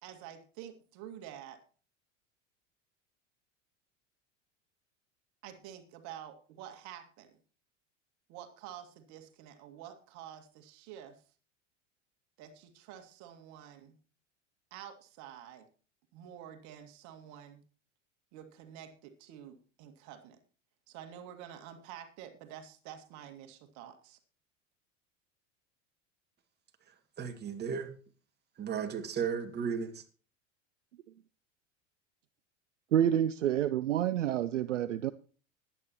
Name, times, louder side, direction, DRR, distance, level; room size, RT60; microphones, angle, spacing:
voice 1, 0.0-1.6 5.4-7.4 8.3-11.2 12.4-14.0 14.7-15.7 16.1-17.6 18.3-20.4 20.9-24.2, right 10 dB, 50° right, 7 dB, 2.1 m, -49 dB
voice 2, 27.2-27.9 28.6-30.0, right 6 dB, 25° right, 5 dB, 2.1 m, -34 dB
voice 3, 32.9-35.1, right 10 dB, 75° right, 14 dB, 0.6 m, -28 dB
21.0 x 9.0 x 3.0 m, 0.39 s
figure-of-eight pair, 80°, 37 cm